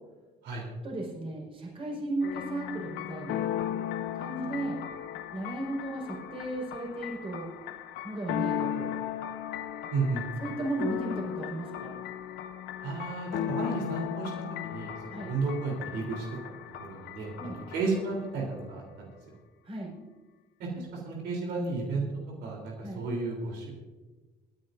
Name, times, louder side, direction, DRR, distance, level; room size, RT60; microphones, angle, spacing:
voice 1, 0.8-3.4 4.1-4.8 5.3-7.5 8.0-8.9 10.4-11.9 15.1-15.3 17.4-17.6 19.6-19.9 22.8-23.0, right 2 dB, 35° right, -2 dB, 4.8 m, -35 dB
sound 1, 2.2-18.3, left 10 dB, 85° left, 0.8 m, -36 dB
voice 2, 9.9-10.2 12.8-14.3 14.6-16.3 16.8-19.1 20.6-22.1 22.4-23.7, right 3 dB, 80° right, -1 dB, 3.6 m, -33 dB
27.0 x 9.8 x 2.6 m, 1.3 s
cardioid pair, 110°, 17 cm